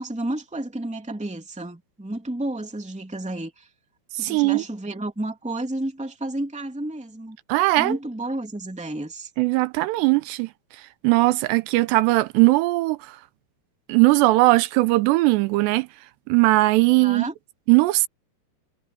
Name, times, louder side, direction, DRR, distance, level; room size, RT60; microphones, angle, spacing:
voice 1, 0.0-3.7 4.2-7.4 7.8-9.3 17.0-17.3, right 1 dB, ahead, 2.2 m, -31 dB
voice 2, 4.2-4.6 7.5-8.0 9.4-10.5 11.0-13.0 13.9-15.9 16.3-17.3 17.7-18.1, right 21 dB, 85° right, 2.8 m, -19 dB
omnidirectional pair, 5.0 m